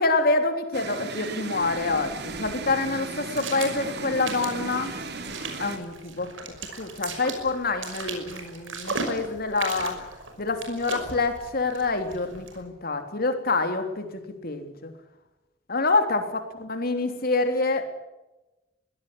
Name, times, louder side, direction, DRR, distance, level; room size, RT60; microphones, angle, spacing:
voice 1, 0.0-4.9 5.6-6.3 6.8-10.0 10.4-14.9 15.7-16.4 16.7-17.8, left 3 dB, 50° left, 7 dB, 3.4 m, -26 dB
sound 1, 0.7-5.8, right 3 dB, 60° right, 3.0 m, -35 dB
sound 2, 1.6-12.6, right 4 dB, 85° right, 5.8 m, -38 dB
23.0 x 17.5 x 9.9 m, 1.0 s
head